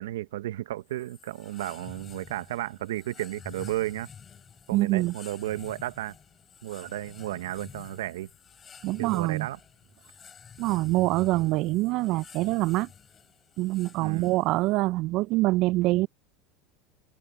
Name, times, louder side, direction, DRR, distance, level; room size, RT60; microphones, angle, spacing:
voice 1, 0.0-4.1 4.7-6.1 6.6-8.3 9.0-9.6 14.0-14.3, right 15 dB, 80° right, 1.0 m, -33 dB
sound 1, 0.9-14.7, left 7 dB, 30° left, 5.0 m, -49 dB
voice 2, 4.7-5.1 8.8-9.5 10.6-12.9 13.6-16.1, right 19 dB, 55° right, 0.4 m, -25 dB
hypercardioid pair, 95°, 0 cm